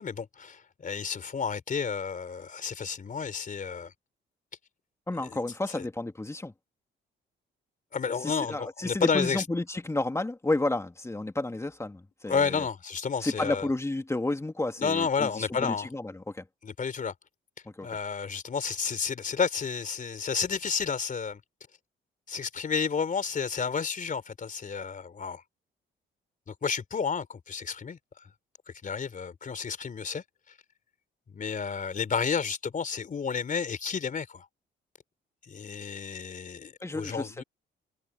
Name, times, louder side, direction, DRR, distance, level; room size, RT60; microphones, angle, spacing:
voice 1, 0.0-3.9 5.3-5.4 5.8-5.9 7.9-9.4 12.3-13.7 14.8-15.9 16.6-17.1 17.8-21.4 22.3-25.4 26.5-28.0 28.8-30.2 31.3-34.5 35.5-37.4, left 6 dB, 40° left, 3.8 m, -31 dB
voice 2, 5.1-6.5 8.2-12.7 13.2-16.5 17.6-17.9 36.8-37.4, left 2 dB, 15° left, 2.7 m, -31 dB
cardioid pair, 90°, 20 cm